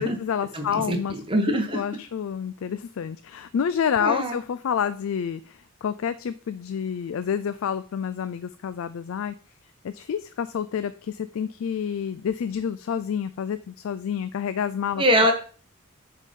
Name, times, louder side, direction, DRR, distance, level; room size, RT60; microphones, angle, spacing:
voice 1, 0.0-9.4 9.8-15.0, left 7 dB, 60° left, 13 dB, 0.3 m, -29 dB
voice 2, 0.5-1.0 1.3-1.8 4.0-4.4 15.0-15.3, equal, 25° right, 5 dB, 1.2 m, -22 dB
7.3 x 3.8 x 5.3 m, 0.41 s
head